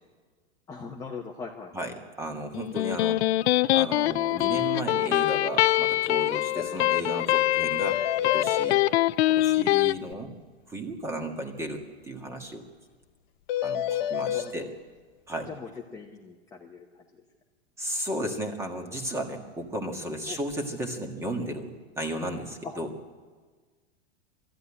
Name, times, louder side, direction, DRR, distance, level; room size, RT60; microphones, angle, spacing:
voice 1, 0.7-1.9 13.9-14.7 15.5-17.2 20.3-20.4 22.6-22.7, left 5 dB, 10° left, -1 dB, 0.9 m, -41 dB
voice 2, 1.7-3.2 3.7-8.8 9.3-10.4 10.7-12.7 13.6-14.7 15.3-15.5 17.8-22.9, right 1 dB, 10° right, 4 dB, 1.6 m, -34 dB
Electric guitar, 2.5-9.9, left 15 dB, 75° left, 0.5 m, -24 dB
sound 1, 6.6-6.7 6.9-7.0 7.3-7.4 7.8-8.8 13.5-14.5, left 11 dB, 50° left, 0.9 m, -29 dB
20.0 x 14.0 x 9.8 m, 1.5 s
supercardioid pair, 160°, 32 cm